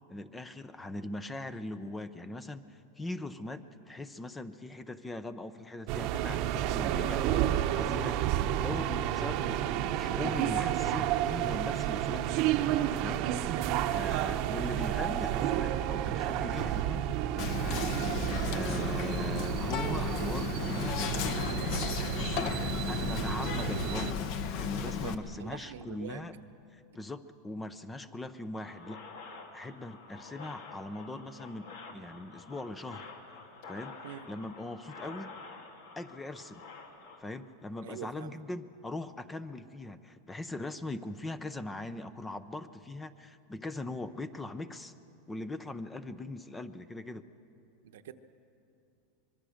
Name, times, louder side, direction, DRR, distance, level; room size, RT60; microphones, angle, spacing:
voice 1, 0.1-12.4 12.9-13.6 13.9-17.0 17.3-17.9 18.5-21.0 22.1-22.6 22.9-26.4 26.7-29.0 29.5-33.1 33.7-34.0 34.3-35.3 36.0-36.6 37.2-44.9 45.3-47.3, left 2 dB, 10° left, 13 dB, 0.6 m, -41 dB
sound 1, 5.9-24.1, right 11 dB, 45° right, 0.9 m, -31 dB
voice 2, 13.5-14.1 17.9-18.1 24.8-26.2 34.0-34.2 37.8-38.4 47.8-48.1, right 9 dB, 85° right, 8 dB, 1.0 m, -44 dB
Whispering, 17.4-25.1, left 6 dB, 50° left, 1.1 m, -34 dB
sound 2, 28.5-37.2, left 4 dB, 65° left, 2.5 m, -49 dB
24.0 x 22.5 x 6.5 m, 2.7 s
supercardioid pair, 155°, 0 cm